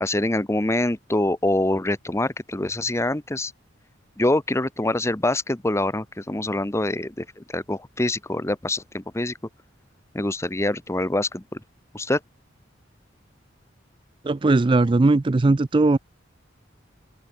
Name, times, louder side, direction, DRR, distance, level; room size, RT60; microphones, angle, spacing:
voice 1, 0.0-3.5 4.2-9.3 10.1-11.6 11.9-12.2, left 1 dB, 15° left, 0.9 m, -25 dB
voice 2, 14.2-16.0, right 2 dB, 25° right, 0.4 m, -18 dB
open air
head